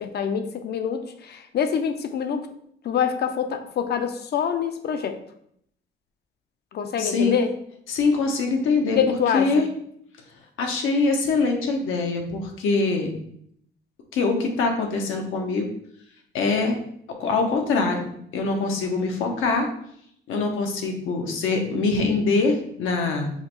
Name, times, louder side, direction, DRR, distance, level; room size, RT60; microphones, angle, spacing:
voice 1, 0.0-2.5 2.8-5.2 6.7-7.5 9.0-9.6, left 7 dB, 55° left, 8 dB, 0.5 m, -25 dB
voice 2, 7.0-7.4 7.9-9.0 9.3-9.7 10.6-13.1 14.1-15.7 16.3-16.8 17.2-19.7 20.3-23.3, left 3 dB, 85° left, 2 dB, 0.8 m, -23 dB
5.5 x 2.1 x 3.0 m, 0.69 s
cardioid pair, 90°, 20 cm